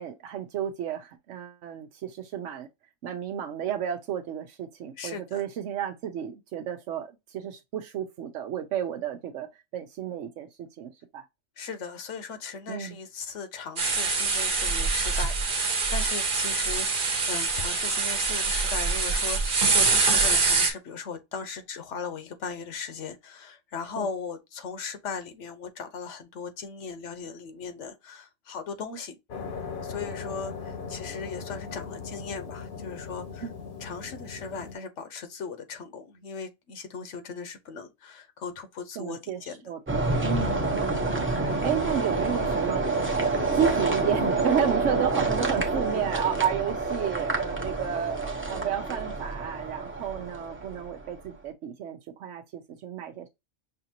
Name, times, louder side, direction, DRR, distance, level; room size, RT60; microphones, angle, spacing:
voice 1, 0.0-2.7 3.0-9.5 9.7-11.2 12.7-13.0 24.0-24.1 33.4-33.5 39.0-41.2 41.4-43.0 43.5-53.3, right 9 dB, 90° right, 1.0 m, -32 dB
voice 2, 5.0-5.4 11.6-29.2 29.8-33.5 33.8-39.7 40.4-40.7, left 5 dB, 80° left, 1.1 m, -38 dB
sound 1, 13.8-20.7, right 4 dB, 50° right, 1.0 m, -25 dB
sound 2, 29.3-34.7, left 5 dB, 50° left, 0.9 m, -38 dB
sound 3, 39.9-51.1, right 3 dB, 10° right, 0.7 m, -28 dB
5.7 x 2.6 x 2.8 m
omnidirectional pair, 1.2 m